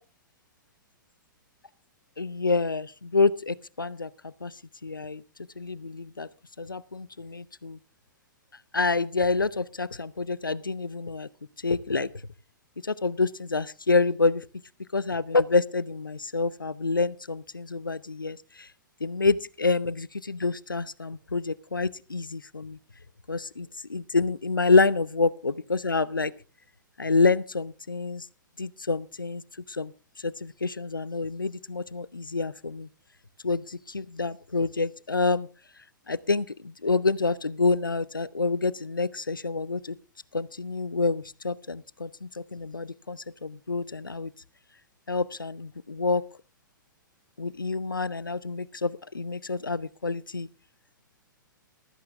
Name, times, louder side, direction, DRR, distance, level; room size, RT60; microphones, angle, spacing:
voice 1, 2.2-4.5 4.8-5.2 5.6-6.3 6.6-7.8 8.7-11.3 11.6-12.1 12.8-14.4 14.9-18.7 19.0-22.8 23.3-26.3 27.0-28.3 28.6-29.4 29.7-29.9 30.2-32.9 33.4-35.5 36.1-40.0 40.3-44.3 45.1-46.2 47.4-50.5, left 3 dB, 85° left, 19 dB, 0.7 m, -27 dB
15.0 x 13.0 x 3.5 m, 0.34 s
figure-of-eight pair, 110°, 11 cm